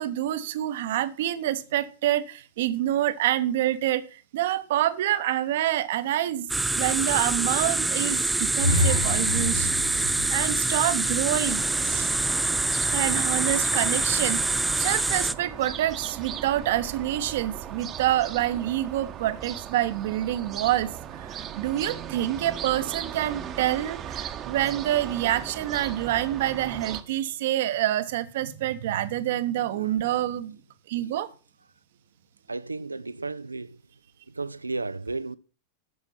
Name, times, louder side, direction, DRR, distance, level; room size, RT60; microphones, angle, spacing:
voice 1, 0.0-6.5 6.8-9.7 10.3-12.2 12.9-14.4 14.8-30.6 30.9-31.3, right 13 dB, 55° right, 0.9 m, -27 dB
sound 1, 6.5-15.3, right 2 dB, 5° right, 0.5 m, -25 dB
sound 2, 8.6-12.4, left 1 dB, 90° left, 1.4 m, -29 dB
sound 3, 11.5-27.0, right 9 dB, 30° right, 1.0 m, -38 dB
voice 2, 29.7-30.0 32.5-33.8 34.3-35.4, right 3 dB, 80° right, 0.4 m, -34 dB
12.0 x 7.0 x 5.8 m
figure-of-eight pair, 90°, 0 cm